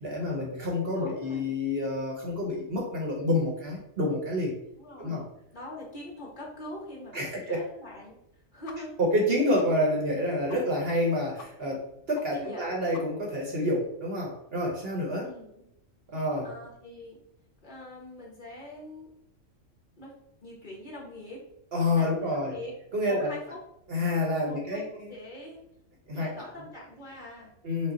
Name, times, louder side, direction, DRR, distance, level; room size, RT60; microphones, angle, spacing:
voice 1, 0.0-4.5 5.0-5.2 7.1-7.6 9.0-11.8 12.1-15.3 16.1-16.5 21.7-22.5 22.9-23.3 23.9-25.1 26.1-26.4 27.6-27.9, left 1 dB, 50° right, -1 dB, 1.1 m, -28 dB
voice 2, 0.9-1.4 4.8-8.1 8.5-8.9 12.3-12.7 15.2-15.6 16.4-17.2 17.6-19.1 20.0-20.1 20.4-21.4 22.0-22.7 23.1-23.6 24.4-25.6 26.1-27.5, left 1 dB, 40° left, -4 dB, 1.3 m, -43 dB
sound 1, 8.7-8.8 9.1-9.2 9.6-9.7 10.1-10.2 10.5-10.6 10.9-11.0 11.4-11.5 11.8-11.9 12.1-12.2 12.5-12.6 12.9-13.3, left 5 dB, 70° left, 0.9 m, -46 dB
5.4 x 2.3 x 3.8 m, 0.81 s
omnidirectional pair, 1.4 m